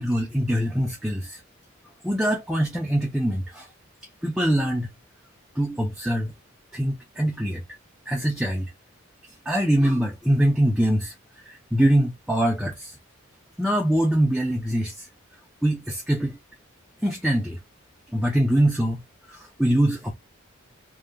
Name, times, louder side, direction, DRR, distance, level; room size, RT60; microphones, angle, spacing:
voice 1, 0.0-1.4 2.0-3.7 4.2-4.9 5.6-6.3 6.7-7.6 8.1-8.7 9.5-11.1 11.5-13.0 13.6-15.1 15.6-16.4 17.0-17.6 18.1-19.0 19.3-20.1, right 1 dB, 5° right, 0.4 m, -23 dB
2.7 x 2.1 x 2.4 m
head